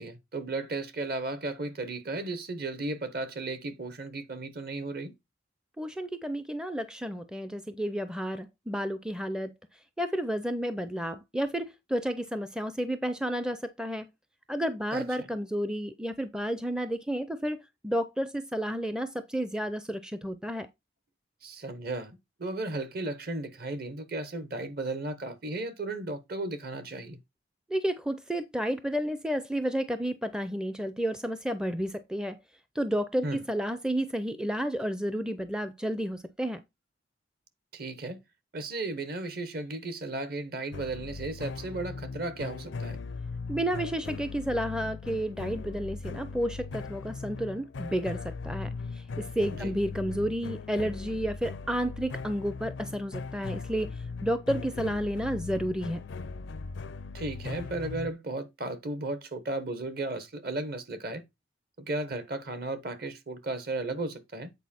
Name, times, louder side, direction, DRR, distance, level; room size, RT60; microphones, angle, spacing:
voice 1, 0.0-5.1 14.9-15.3 21.4-27.2 33.2-33.4 37.7-38.2 38.5-43.0 49.5-49.7 57.1-61.2 61.8-64.5, right 2 dB, 50° right, 1.1 m, -35 dB
voice 2, 5.8-9.5 10.0-14.1 14.5-20.7 27.7-32.4 32.8-36.6 43.5-53.9 54.2-56.0, equal, 5° right, 0.4 m, -31 dB
sound 1, 40.7-58.1, left 4 dB, 70° left, 0.5 m, -39 dB
8.3 x 4.5 x 4.3 m
head